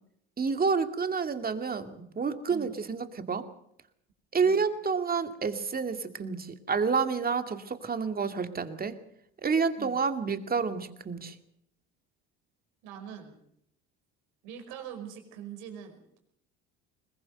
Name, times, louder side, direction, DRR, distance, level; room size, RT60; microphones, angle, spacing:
voice 1, 0.4-3.5 4.3-8.9 9.4-11.3, right 5 dB, 30° right, 8 dB, 2.4 m, -29 dB
voice 2, 12.8-13.3 14.4-16.2, right 8 dB, 75° right, 6 dB, 5.1 m, -43 dB
21.5 x 20.0 x 6.7 m, 0.72 s
supercardioid pair, 80°, 31 cm